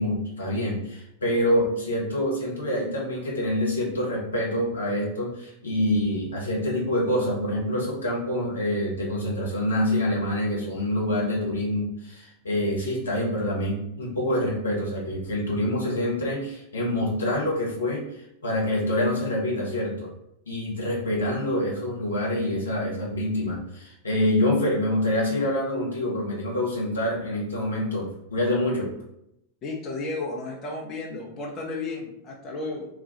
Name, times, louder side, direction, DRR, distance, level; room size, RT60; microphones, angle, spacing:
voice 1, 0.0-20.1 20.5-28.9, left 1 dB, 70° left, -3 dB, 1.0 m, -26 dB
voice 2, 29.6-32.9, left 3 dB, 30° left, -2 dB, 0.7 m, -33 dB
2.9 x 2.4 x 4.0 m, 0.80 s
figure-of-eight pair, 90°, 0 cm